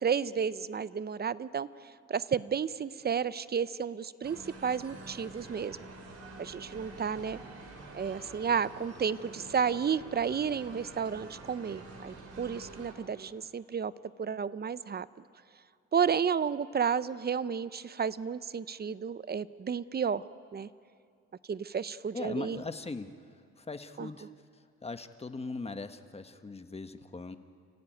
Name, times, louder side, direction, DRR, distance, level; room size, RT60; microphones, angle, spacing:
voice 1, 0.0-1.7 2.1-5.8 6.4-7.4 7.9-13.9 14.2-15.1 15.9-20.2 20.5-20.7 21.5-22.6 24.0-24.1, right 7 dB, 35° right, 16 dB, 0.7 m, -32 dB
sound 1, 4.2-12.9, right 2 dB, 55° right, 4.3 m, -48 dB
voice 2, 22.1-27.4, left 3 dB, 20° left, 9 dB, 1.3 m, -40 dB
29.5 x 15.5 x 9.3 m, 2.3 s
cardioid pair, 90°, 30 cm